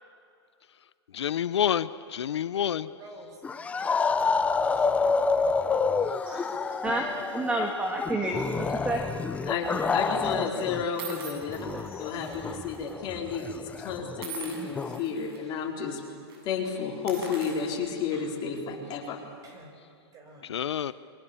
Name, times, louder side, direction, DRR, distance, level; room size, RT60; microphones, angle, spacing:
voice 1, 1.1-2.9 20.5-20.9, left 9 dB, 80° left, 16 dB, 0.7 m, -28 dB
voice 2, 2.9-5.7 6.4-6.6 9.1-9.3 10.1-10.2 19.4-19.7 20.1-20.9, right 2 dB, 25° right, 3 dB, 5.3 m, -51 dB
sound 1, 3.4-10.8 11.1-15.0, left 4 dB, 10° left, 0.6 m, -29 dB
voice 3, 6.0-7.0 7.3-9.0 11.7-12.0, right 2 dB, 10° right, 2 dB, 1.7 m, -31 dB
sound 2, 9.3-9.6 10.3-10.4 11.0-12.9 13.2-13.4 14.2-15.4 15.8-16.0 16.3-16.4 16.9-18.5, right 5 dB, 65° right, 7.9 m, -44 dB
voice 4, 9.5-11.6 12.0-16.0 16.4-19.2, left 6 dB, 30° left, 0 dB, 4.2 m, -32 dB
30.0 x 23.0 x 7.1 m, 2.4 s
hypercardioid pair, 140°, 14 cm